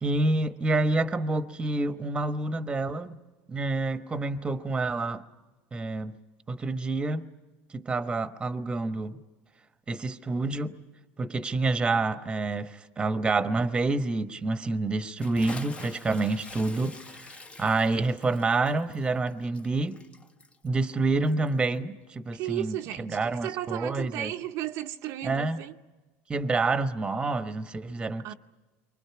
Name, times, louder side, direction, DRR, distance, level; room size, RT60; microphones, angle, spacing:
voice 1, 0.0-3.2 3.5-5.2 5.7-6.1 6.5-7.3 7.7-9.2 9.9-10.7 11.2-20.0 20.6-24.3 25.2-25.6 26.3-28.3, right 3 dB, 15° right, 1.1 m, -28 dB
Bathtub (filling or washing) / Splash splatter, 15.2-21.8, left 3 dB, 20° left, 0.9 m, -47 dB
voice 2, 22.3-25.8 28.2-28.3, right 13 dB, 60° right, 0.7 m, -34 dB
29.0 x 24.0 x 5.9 m
supercardioid pair, 125°, 6 cm